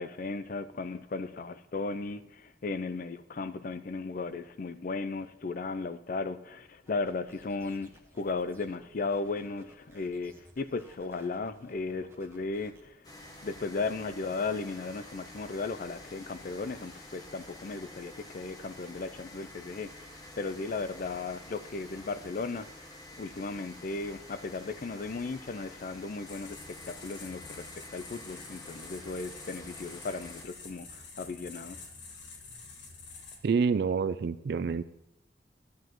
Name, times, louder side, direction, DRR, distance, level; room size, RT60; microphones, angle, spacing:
voice 1, 0.0-13.0 13.4-20.1 20.4-22.7 23.2-31.8, left 3 dB, 50° left, 0.5 m, -36 dB
sound 1, 6.9-12.8, right 1 dB, 15° right, 1.1 m, -58 dB
sound 2, 13.0-30.4, left 1 dB, 20° left, 1.1 m, -49 dB
sound 3, 26.3-33.4, left 4 dB, 80° left, 1.4 m, -48 dB
voice 2, 33.4-34.8, right 5 dB, 60° right, 0.3 m, -27 dB
13.0 x 9.5 x 3.0 m
head